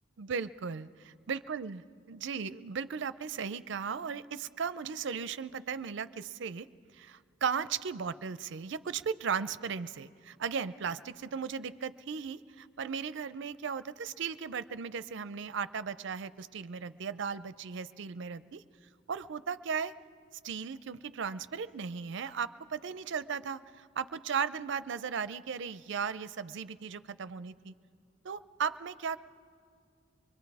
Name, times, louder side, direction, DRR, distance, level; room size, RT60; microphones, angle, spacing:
voice 1, 0.2-0.9 1.3-6.7 6.9-18.6 19.1-19.9 20.4-27.7 28.2-29.2, right 6 dB, 60° right, 15 dB, 0.5 m, -36 dB
24.5 x 22.0 x 4.8 m, 2.2 s
head